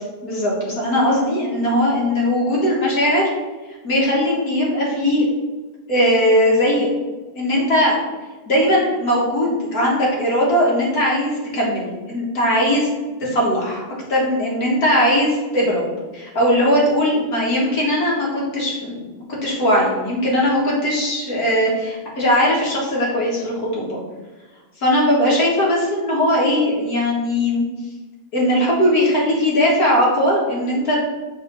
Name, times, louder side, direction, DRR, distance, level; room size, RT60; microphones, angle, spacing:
voice 1, 0.2-3.2 3.8-5.2 5.9-6.9 7.4-8.0 8.5-12.9 13.2-13.8 14.1-19.1 19.4-24.0 24.8-27.7 28.3-31.0, equal, 45° left, -4 dB, 2.0 m, -19 dB
5.4 x 3.8 x 5.5 m, 1.2 s
omnidirectional pair, 2.3 m